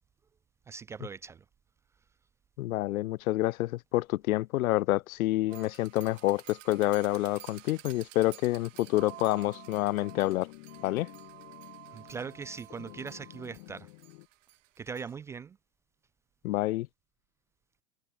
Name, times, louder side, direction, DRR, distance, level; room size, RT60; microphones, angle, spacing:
voice 1, 0.7-1.4 11.9-13.9 14.8-15.6, right 5 dB, 5° right, 0.4 m, -40 dB
voice 2, 2.6-10.5 10.8-11.1 16.4-16.9, left 17 dB, 70° left, 0.6 m, -28 dB
sound 1, 5.5-15.1, right 17 dB, 55° right, 1.9 m, -51 dB
sound 2, 8.7-14.3, left 28 dB, 40° left, 1.3 m, -51 dB
supercardioid pair, 150°, 44 cm